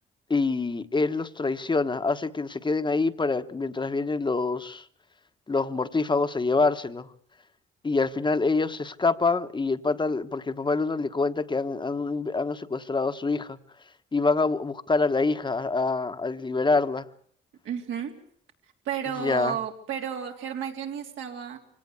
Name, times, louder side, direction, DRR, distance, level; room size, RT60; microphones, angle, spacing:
voice 1, 0.3-4.8 5.5-7.1 7.8-13.6 14.1-17.1 19.2-19.6, left 3 dB, 25° left, 1.2 m, -26 dB
voice 2, 17.6-18.1 18.8-21.6, right 8 dB, 80° right, 3.4 m, -32 dB
24.5 x 17.5 x 8.2 m
cardioid pair, 90°, 20 cm